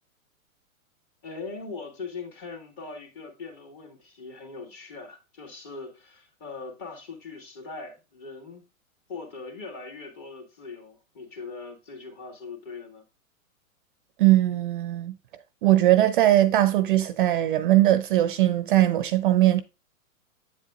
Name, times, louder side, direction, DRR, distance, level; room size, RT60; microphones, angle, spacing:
voice 1, 1.2-8.6 9.1-13.0, left 4 dB, 35° left, 2.4 m, -40 dB
voice 2, 14.2-15.1 15.6-19.6, right 14 dB, 40° right, 0.4 m, -20 dB
8.0 x 7.2 x 2.4 m
hypercardioid pair, 110°, 42 cm